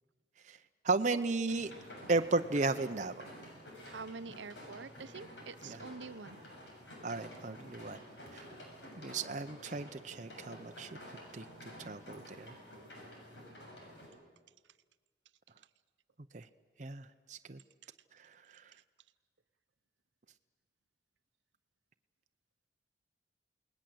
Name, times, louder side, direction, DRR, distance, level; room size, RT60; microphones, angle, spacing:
voice 1, 0.8-1.7 2.1-3.3 5.7-5.8 7.0-8.0 8.3-8.4 9.0-11.0 11.3-11.5 11.8-12.6 16.3-16.5 16.8-17.6 18.1-18.6, right 3 dB, 40° right, 8 dB, 0.7 m, -35 dB
sound 1, 1.5-14.1, equal, 70° left, 7.2 m, -51 dB
voice 2, 3.8-6.4, right 4 dB, 80° right, 12 dB, 0.8 m, -46 dB
29.0 x 19.5 x 7.8 m, 1.4 s
head